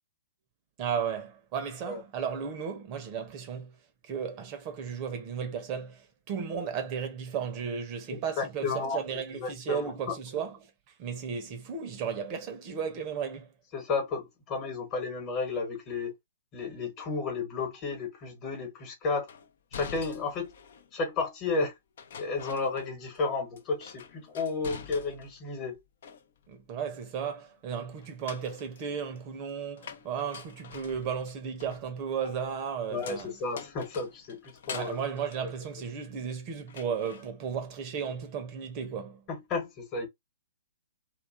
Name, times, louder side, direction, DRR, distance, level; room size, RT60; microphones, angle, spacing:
voice 1, 0.8-3.8 4.0-10.7 11.0-13.5 26.5-33.4 34.7-39.2, right 7 dB, 35° right, 0.6 m, -34 dB
voice 2, 8.1-9.0 9.3-9.9 13.7-16.1 16.5-19.3 19.7-20.5 20.9-21.7 22.2-25.8 32.9-35.0 35.4-35.5 39.3-40.1, left 4 dB, 30° left, 1.2 m, -32 dB
sound 1, 19.3-20.9 22.0-23.3 23.5-25.4 25.8-26.6 28.0-36.3 36.7-37.3, left 7 dB, 55° left, 0.5 m, -46 dB
2.7 x 2.4 x 2.5 m
figure-of-eight pair, 120°, 0 cm